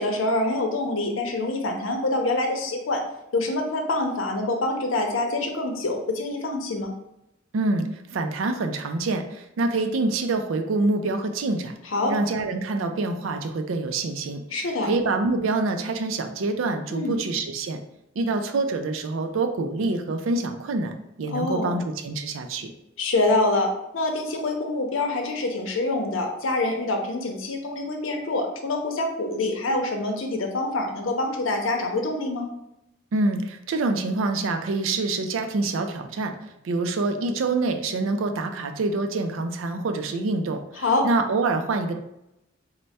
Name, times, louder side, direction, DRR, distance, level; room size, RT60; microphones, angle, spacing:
voice 1, 0.0-3.0 3.3-6.9 11.9-12.1 14.5-14.9 16.9-17.2 21.3-21.8 23.0-32.5 40.8-41.1, left 2 dB, 85° left, 3 dB, 0.7 m, -25 dB
voice 2, 7.5-11.7 12.1-17.8 18.2-20.9 21.2-22.7 33.1-36.3 36.6-41.9, right 3 dB, 85° right, 6 dB, 0.4 m, -26 dB
3.2 x 2.1 x 4.1 m, 0.86 s
head